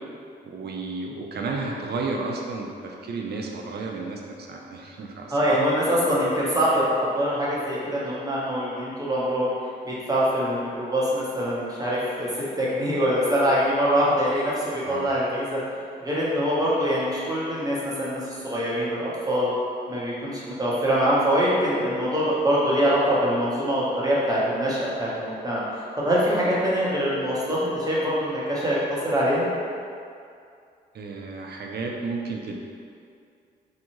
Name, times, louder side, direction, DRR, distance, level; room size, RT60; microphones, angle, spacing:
voice 1, 0.4-4.2 4.5-5.6 14.9-15.1 30.9-32.6, right 3 dB, 60° right, 0 dB, 0.5 m, -32 dB
voice 2, 5.3-9.5 9.8-12.3 12.6-15.6 16.0-19.5 19.9-25.6 26.0-28.8 29.0-29.5, equal, 20° right, -7 dB, 0.9 m, -24 dB
2.7 x 2.3 x 3.0 m, 2.4 s
supercardioid pair, 50°, 19 cm